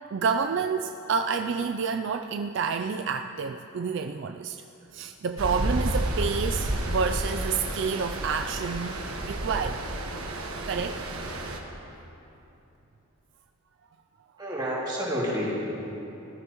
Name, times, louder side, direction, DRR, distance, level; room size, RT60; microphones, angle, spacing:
voice 1, 0.1-4.6 4.9-9.0 9.3-9.8 10.7-11.0, right 5 dB, 55° right, 6 dB, 0.3 m, -29 dB
Stream, 5.4-11.6, right 1 dB, 75° right, 1.3 m, -31 dB
voice 2, 14.4-15.6, equal, 20° right, -6 dB, 2.6 m, -29 dB
20.0 x 13.0 x 3.0 m, 3.0 s
head